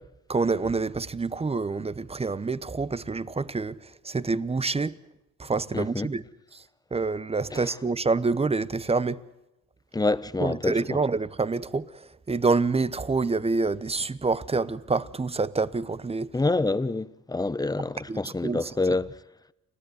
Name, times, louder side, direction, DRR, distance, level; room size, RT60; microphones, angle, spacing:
voice 1, 0.3-5.0 5.4-6.2 6.5-6.6 6.9-9.2 10.4-16.3 18.1-18.7, right 4 dB, 20° right, 0.8 m, -27 dB
voice 2, 5.7-6.1 7.5-7.6 9.9-11.0 16.3-19.1, left 2 dB, 10° left, 1.0 m, -27 dB
29.5 x 13.0 x 9.6 m
cardioid pair, 90°, 30 cm